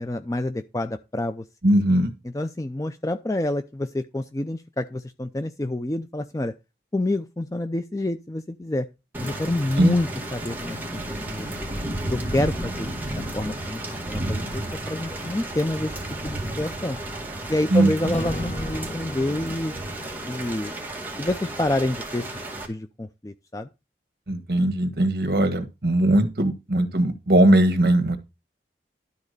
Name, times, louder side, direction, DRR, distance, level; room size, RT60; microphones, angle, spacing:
voice 1, 0.0-1.4 2.2-6.5 6.9-8.9 9.2-10.8 11.1-11.7 12.1-13.8 14.1-15.9 16.2-17.0 17.5-19.7 20.2-20.7 21.2-22.3 22.7-23.7, left 1 dB, 20° left, 0.4 m, -28 dB
voice 2, 1.6-2.1 9.8-9.9 17.7-17.9 24.3-28.2, right 1 dB, 60° right, 1.6 m, -19 dB
Thunder / Rain, 9.1-22.7, right 1 dB, 10° right, 2.0 m, -32 dB
Acoustic guitar / Strum, 18.1-21.4, left 1 dB, 35° left, 1.2 m, -38 dB
12.0 x 4.2 x 6.6 m
head